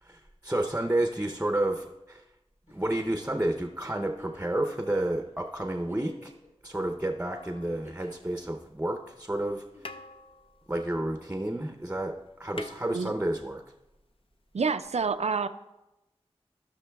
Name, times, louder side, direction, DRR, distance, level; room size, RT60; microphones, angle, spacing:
voice 1, 0.0-2.2 2.7-6.3 6.6-9.6 10.7-12.1 12.4-13.6, right 1 dB, 15° right, 5 dB, 0.6 m, -30 dB
Giggle, 2.7-3.3 4.1-4.6 5.2-5.3 5.7-6.5 7.6-8.3 9.4-10.1 11.4-11.8 13.3-13.4, left 1 dB, 85° left, 3.3 m, -52 dB
sound 1, 7.3-8.5 9.4-9.5 9.8-11.7 12.0-12.1 12.3-13.7 14.8-14.9, left 2 dB, 55° left, 0.5 m, -47 dB
voice 2, 14.5-15.5, right 5 dB, 75° right, 11 dB, 0.4 m, -27 dB
16.5 x 5.7 x 2.3 m, 0.99 s
wide cardioid pair, 45°, 11 cm